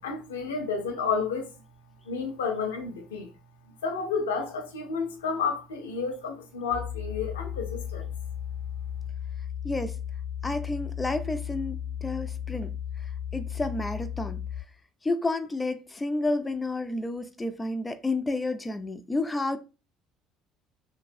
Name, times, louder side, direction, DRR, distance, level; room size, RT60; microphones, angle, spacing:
voice 1, 0.0-1.5 2.1-3.3 3.8-8.1, left 5 dB, 85° left, 0.5 m, -31 dB
sound 1, 6.7-14.6, left 9 dB, 20° right, 0.8 m, -35 dB
voice 2, 9.6-10.0 10.4-12.7 13.3-14.4 15.0-19.6, left 2 dB, 20° left, 0.4 m, -30 dB
3.0 x 2.6 x 2.5 m
hypercardioid pair, 65°, 0 cm